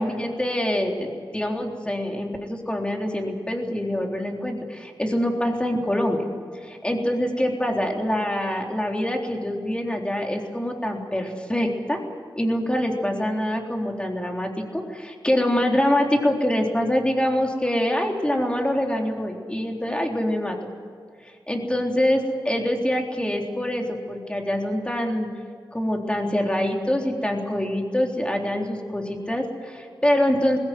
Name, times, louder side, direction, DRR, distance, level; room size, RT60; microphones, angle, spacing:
voice 1, 0.0-6.2 6.6-12.0 12.4-20.6 21.5-25.3 25.7-30.6, left 1 dB, 15° left, 1 dB, 3.7 m, -25 dB
20.0 x 16.5 x 9.5 m, 2.2 s
wide cardioid pair, 75°, 8 cm